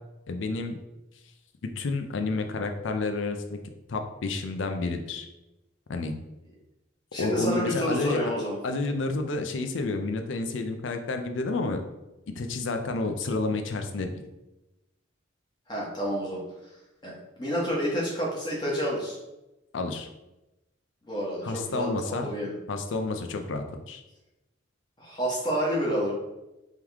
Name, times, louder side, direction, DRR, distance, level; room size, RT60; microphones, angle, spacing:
voice 1, 0.3-0.7 1.8-3.6 3.9-5.3 5.9-6.1 7.2-8.3 8.6-11.8 12.4-14.1 19.7-20.1 21.4-22.2 22.7-24.0, left 3 dB, 75° left, 6 dB, 0.5 m, -30 dB
voice 2, 7.1-8.6 15.7-16.4 17.0-19.2 21.1-22.5 25.0-26.1, equal, 20° left, -5 dB, 1.2 m, -29 dB
3.6 x 3.1 x 3.5 m, 0.98 s
head